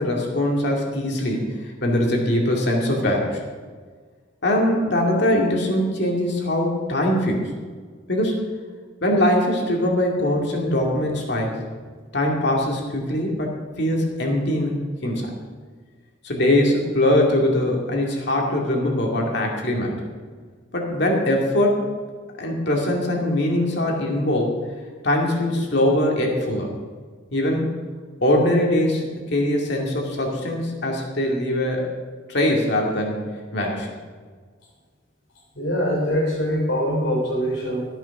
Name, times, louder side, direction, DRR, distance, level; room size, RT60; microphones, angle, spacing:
voice 1, 0.0-3.4 4.4-7.4 8.1-8.4 9.0-11.5 12.1-13.5 13.8-15.3 16.2-20.1 20.7-21.9 22.4-24.6 25.0-26.7 27.3-27.7 28.2-31.9 32.3-33.9, left 1 dB, 60° left, 0 dB, 2.3 m, -22 dB
voice 2, 35.6-37.9, equal, 80° left, -3 dB, 3.5 m, -23 dB
13.5 x 9.1 x 6.0 m, 1.6 s
head